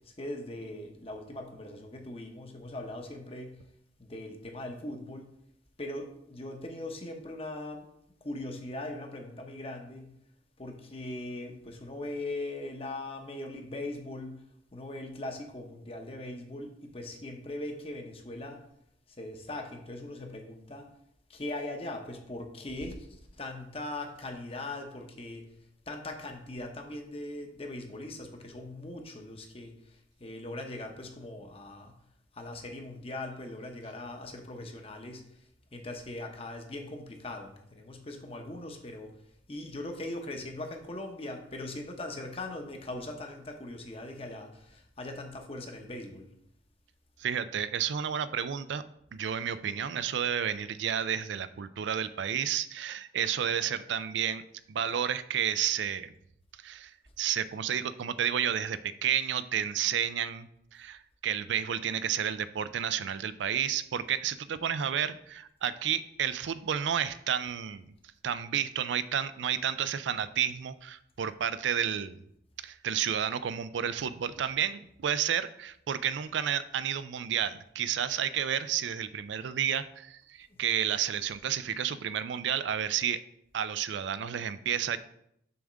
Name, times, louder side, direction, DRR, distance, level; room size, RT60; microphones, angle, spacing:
voice 1, 0.2-3.6 4.0-5.3 5.8-7.8 8.2-10.1 10.6-14.4 14.7-18.6 19.2-20.9 21.3-23.1 23.4-25.4 25.9-29.7 30.2-31.9 32.3-35.2 35.7-39.1 39.5-46.3 80.5-80.7, left 2 dB, 30° left, 4 dB, 0.9 m, -40 dB
voice 2, 47.2-48.8 49.1-54.4 54.7-56.1 56.6-56.9 57.2-67.8 68.2-72.2 72.6-83.2 83.5-85.0, right 9 dB, 75° right, 14 dB, 0.4 m, -31 dB
7.0 x 3.5 x 6.3 m, 0.74 s
head